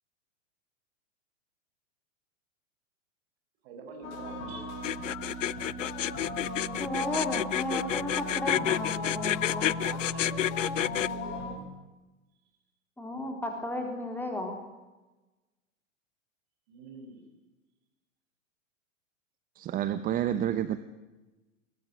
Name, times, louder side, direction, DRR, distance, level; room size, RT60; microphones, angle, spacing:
voice 1, 3.6-4.7 9.7-11.6 16.7-17.2, right 4 dB, 50° right, 4 dB, 6.9 m, -45 dB
sound 1, 4.0-11.6, left 2 dB, 45° left, 7.4 m, -37 dB
sound 2, 4.8-11.1, left 12 dB, 70° left, 0.6 m, -29 dB
voice 2, 6.8-9.8 13.0-14.5, left 1 dB, 5° left, 3 dB, 3.8 m, -33 dB
voice 3, 19.6-20.8, right 11 dB, 20° right, 14 dB, 0.8 m, -29 dB
22.0 x 19.5 x 7.7 m, 1.1 s
figure-of-eight pair, 105°, 39 cm